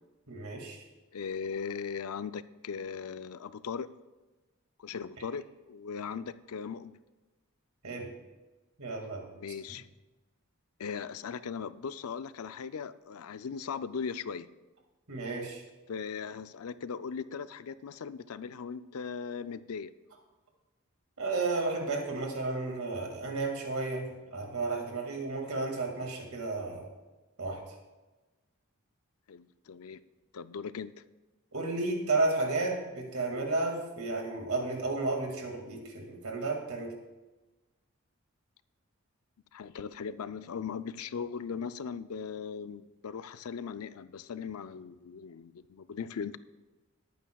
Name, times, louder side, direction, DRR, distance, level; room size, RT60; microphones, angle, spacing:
voice 1, 0.3-0.8 7.8-8.1 8.8-9.3 15.1-15.6 21.2-26.9 27.4-27.6 31.5-37.0, right 3 dB, 80° right, 2 dB, 2.1 m, -32 dB
voice 2, 1.1-3.9 4.8-7.0 9.3-9.8 10.8-14.5 15.9-19.9 29.3-30.0 30.3-30.9 39.5-46.4, left 6 dB, 80° left, 14 dB, 0.4 m, -38 dB
19.0 x 9.3 x 2.3 m, 1.1 s
head